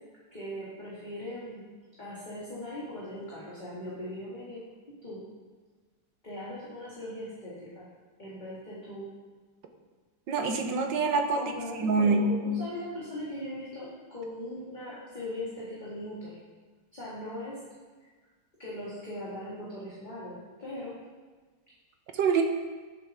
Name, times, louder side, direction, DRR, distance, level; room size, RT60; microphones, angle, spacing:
voice 1, 0.3-1.6 2.0-4.6 5.0-5.3 6.2-7.9 8.2-9.0 11.4-16.3 16.9-17.6 18.6-20.9, left 1 dB, 25° left, -8 dB, 2.1 m, -39 dB
voice 2, 10.3-11.5 11.8-12.2 22.2-22.4, right 5 dB, 80° right, 4 dB, 1.7 m, -25 dB
12.0 x 7.6 x 3.6 m, 1.4 s
omnidirectional pair, 1.9 m